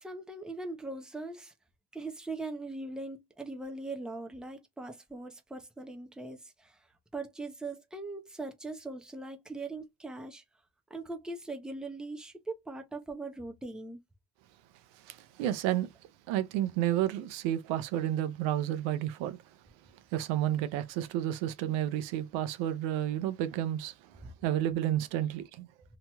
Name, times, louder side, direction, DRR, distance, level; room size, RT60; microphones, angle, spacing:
voice 1, 0.0-1.5 1.9-6.8 7.1-10.4 10.9-14.0, right 2 dB, ahead, 0.7 m, -40 dB
voice 2, 15.0-15.9 16.3-19.4 20.1-23.9 24.4-25.7, right 12 dB, 80° right, 0.7 m, -31 dB
2.9 x 2.8 x 2.3 m
supercardioid pair, 75°, 45 cm